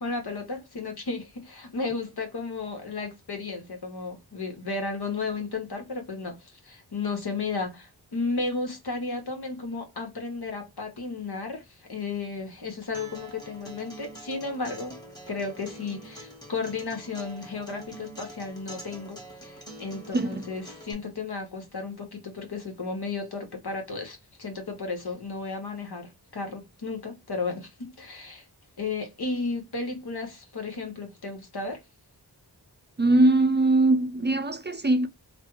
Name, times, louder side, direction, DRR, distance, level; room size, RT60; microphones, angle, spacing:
voice 1, 0.0-15.0 15.3-28.4 28.8-31.8, left 3 dB, 65° left, 1.2 m, -34 dB
Acoustic guitar, 12.9-20.9, right 1 dB, 10° left, 1.3 m, -45 dB
voice 2, 20.1-20.5 33.0-35.1, right 2 dB, 25° right, 0.6 m, -21 dB
3.2 x 2.2 x 3.1 m
cardioid pair, 40°, 41 cm